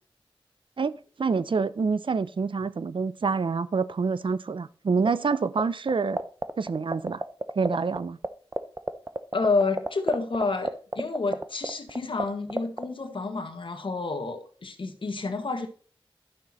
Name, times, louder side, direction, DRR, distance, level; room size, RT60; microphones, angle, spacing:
voice 1, 0.8-6.2 6.6-7.2 7.6-8.2, right 5 dB, 65° right, 0.6 m, -27 dB
sound 1, 5.1-5.6 5.9-8.0 8.2-8.3 8.5-12.2 12.5-12.8, right 2 dB, 25° right, 0.8 m, -27 dB
voice 2, 9.3-15.7, left 3 dB, 65° left, 1.6 m, -29 dB
11.5 x 6.0 x 4.3 m
wide cardioid pair, 55°, 9 cm